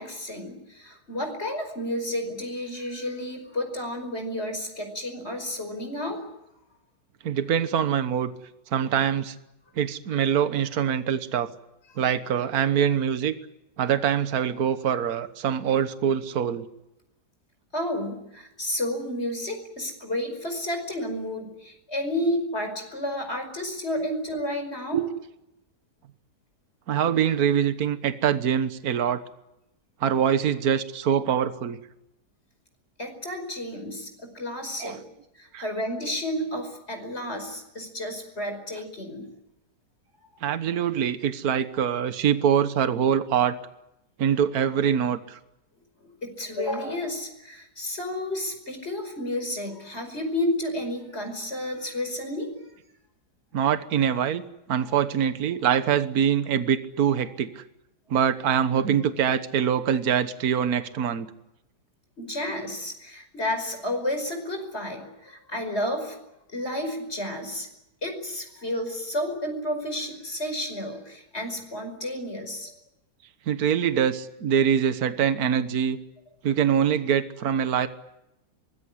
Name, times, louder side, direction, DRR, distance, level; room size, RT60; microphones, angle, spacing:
voice 1, 0.0-6.2 17.7-25.0 33.0-35.0 35.4-39.3 46.0-52.5 54.8-54.9 62.2-66.2 66.5-67.7 68.0-72.7, left 1 dB, 35° left, 6 dB, 5.6 m, -31 dB
voice 2, 7.2-8.3 8.7-9.3 9.8-11.5 12.0-13.3 13.8-16.7 24.9-25.0 26.9-29.2 30.0-31.8 34.8-35.0 35.5-35.6 40.4-43.6 44.2-45.4 53.5-54.4 54.7-57.6 58.1-61.3 73.5-76.0 76.4-77.9, right 8 dB, 60° right, 11 dB, 1.6 m, -24 dB
24.5 x 20.5 x 9.8 m, 0.86 s
omnidirectional pair, 1.8 m